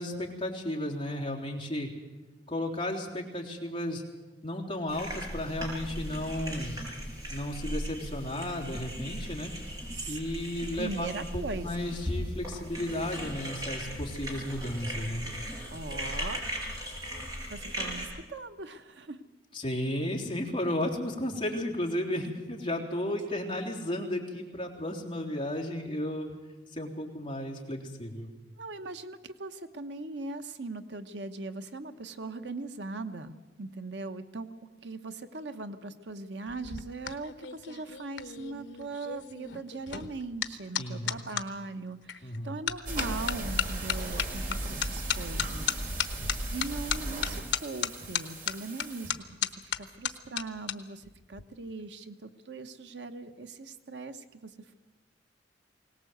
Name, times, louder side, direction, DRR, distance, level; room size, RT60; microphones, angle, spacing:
voice 1, 0.0-1.9 2.5-4.0 4.4-6.8 7.3-9.5 10.1-11.1 11.3-15.3 19.5-26.3 26.7-28.3 40.8-41.2 42.2-42.5, left 1 dB, 30° left, -1 dB, 3.3 m, -34 dB
sound 1, 4.9-18.1, equal, 20° right, 5.4 m, -38 dB
voice 2, 10.7-11.9 15.7-16.4 17.5-19.2 23.2-23.8 28.6-34.5 34.8-45.7 46.2-54.7, right 3 dB, 75° right, 9 dB, 1.1 m, -40 dB
sound 2, 36.5-41.5 42.1-42.4 42.7-50.7 51.0-51.4, left 9 dB, 75° left, 1.0 m, -34 dB
sound 3, 42.9-49.1, right 1 dB, 55° right, 3.5 m, -36 dB
21.5 x 18.5 x 8.0 m, 1.2 s
head